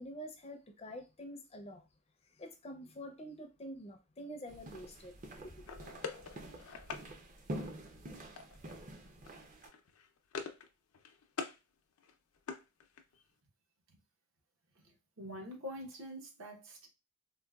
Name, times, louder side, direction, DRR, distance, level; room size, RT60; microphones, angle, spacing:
voice 1, 0.0-1.9 2.2-5.7, equal, 30° left, 0.4 m, -47 dB
sound 1, 4.5-9.7, right 1 dB, 35° right, 0.5 m, -47 dB
sound 2, 5.6-7.1 8.4-8.8 9.0-9.3 9.6-10.7 10.9-11.6 12.0-13.2, left 5 dB, 85° left, 0.5 m, -44 dB
voice 2, 15.2-16.9, equal, 75° right, 0.9 m, -45 dB
3.8 x 2.1 x 2.3 m
head